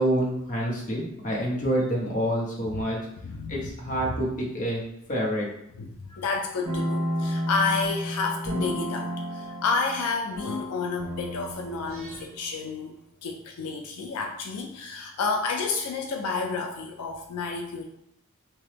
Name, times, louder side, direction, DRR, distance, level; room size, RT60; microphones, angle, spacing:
voice 1, 0.0-3.0 3.5-4.8 5.1-5.5, equal, 35° left, -3 dB, 0.8 m, -27 dB
voice 2, 3.2-4.0 5.8-12.9 13.2-17.9, left 4 dB, 90° left, 2 dB, 0.4 m, -30 dB
sound 1, 6.6-12.6, equal, 70° right, 1.1 m, -32 dB
2.9 x 2.2 x 3.3 m, 0.76 s
head